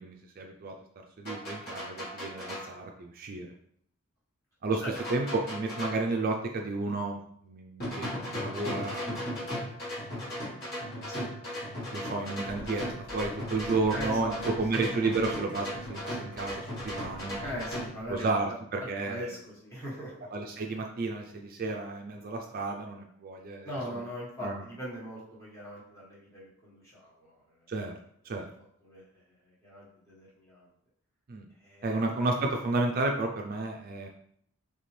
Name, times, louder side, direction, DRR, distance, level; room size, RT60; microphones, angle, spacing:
voice 1, 0.0-3.5 4.6-4.8 5.1-9.5 11.9-17.4 18.1-19.3 20.3-23.7 24.4-24.6 27.7-27.9 28.2-28.5 31.3-31.5 31.8-34.1, right 3 dB, 40° right, 2 dB, 0.4 m, -32 dB
sound 1, 1.2-2.7 4.9-6.1 7.8-17.9, equal, 45° left, 1.5 m, -37 dB
sound 2, 12.4-18.3, equal, 70° left, 1.5 m, -49 dB
voice 2, 13.9-14.4 14.7-14.9 17.4-18.3 18.8-20.3 23.6-27.7 28.8-30.7 31.6-32.3, equal, 15° left, -7 dB, 1.2 m, -40 dB
4.2 x 3.4 x 3.2 m, 0.69 s
head